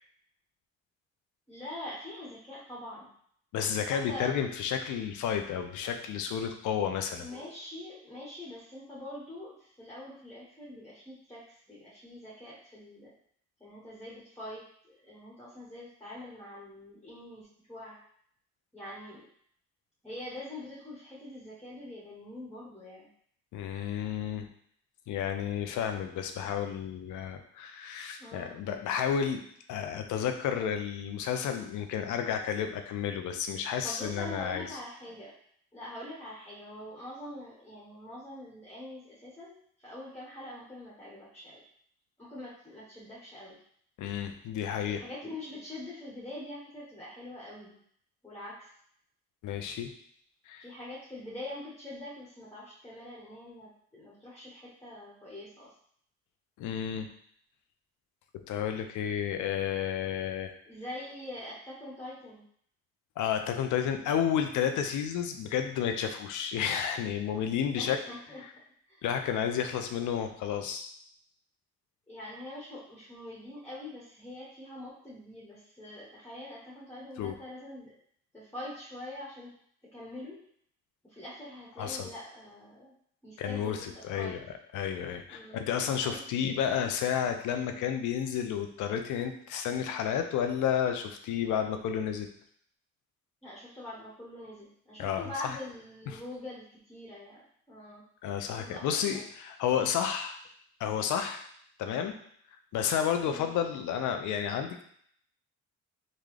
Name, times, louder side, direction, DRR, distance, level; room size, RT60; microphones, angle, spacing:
voice 1, 1.5-3.1 3.9-4.3 7.2-13.1 13.6-18.0 18.7-19.3 20.0-23.1 28.2-28.5 33.8-35.4 35.7-39.5 39.8-41.6 42.2-43.6 44.8-47.8 48.2-48.7 50.6-55.7 60.6-62.4 67.7-68.4 68.9-69.0 72.1-77.9 78.3-79.5 79.9-80.4 81.0-82.9 83.2-83.9 84.2-84.3 85.3-85.7 86.0-86.3 93.4-98.0 98.6-99.2 103.2-103.5, left 1 dB, 10° left, -6 dB, 1.1 m, -44 dB
voice 2, 3.5-7.3 23.5-24.5 25.1-29.4 29.7-34.7 44.0-45.0 49.4-49.9 50.5-50.7 56.6-57.1 58.5-60.5 63.2-68.0 69.0-70.9 77.2-77.3 81.8-82.1 83.4-84.4 84.7-92.3 95.0-95.3 96.1-96.2 98.2-100.4 100.8-101.4 101.8-102.2 102.7-104.8, left 8 dB, 75° left, 6 dB, 0.5 m, -31 dB
3.8 x 2.2 x 3.2 m, 0.64 s
cardioid pair, 90°, 30 cm